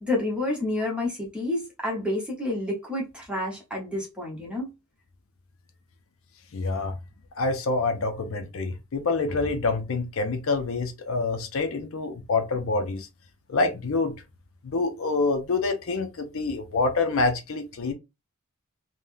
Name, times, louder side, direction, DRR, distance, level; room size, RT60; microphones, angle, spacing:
voice 1, 0.0-4.7, left 1 dB, 5° right, 1.0 m, -29 dB
voice 2, 6.5-6.9 7.4-13.1 13.5-14.1 14.6-17.9, left 3 dB, 65° left, 0.5 m, -26 dB
3.5 x 2.1 x 2.6 m
head